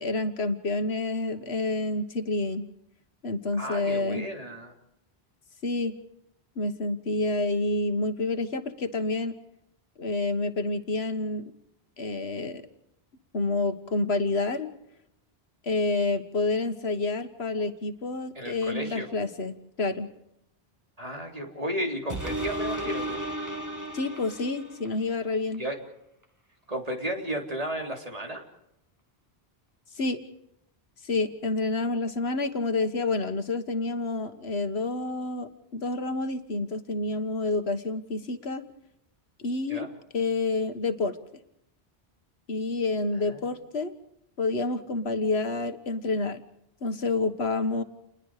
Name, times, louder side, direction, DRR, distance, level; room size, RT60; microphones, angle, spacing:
voice 1, 0.0-2.7 3.2-4.3 5.6-6.0 6.6-9.4 10.0-11.4 12.0-12.6 13.3-14.7 15.6-20.1 23.9-25.6 30.0-30.2 31.0-38.6 39.4-39.9 40.1-41.2 42.5-43.9 44.4-46.4 46.8-47.8, left 3 dB, 80° left, 8 dB, 1.7 m, -28 dB
voice 2, 3.6-4.7 18.4-19.1 21.0-23.2 25.6-25.8 26.7-28.4 39.7-39.9 43.2-43.5, equal, 35° right, 2 dB, 3.7 m, -33 dB
sound 1, 22.1-25.0 25.5-25.6, right 1 dB, 15° right, 3.2 m, -34 dB
29.0 x 21.0 x 5.0 m, 0.79 s
omnidirectional pair, 1.1 m